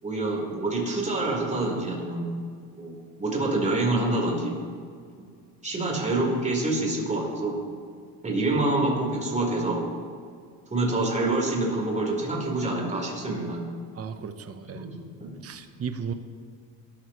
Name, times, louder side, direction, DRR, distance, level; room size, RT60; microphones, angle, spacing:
voice 1, 0.0-2.2 2.8-2.9 3.2-4.5 5.2-5.3 5.6-7.6 8.2-9.8 10.7-13.6 14.7-14.9 15.2-15.3, right 2 dB, 15° right, -2 dB, 4.3 m, -26 dB
voice 2, 13.9-14.8 15.4-16.1, right 6 dB, 35° right, 8 dB, 1.0 m, -35 dB
22.0 x 13.0 x 3.2 m, 2.1 s
cardioid pair, 105°, 42 cm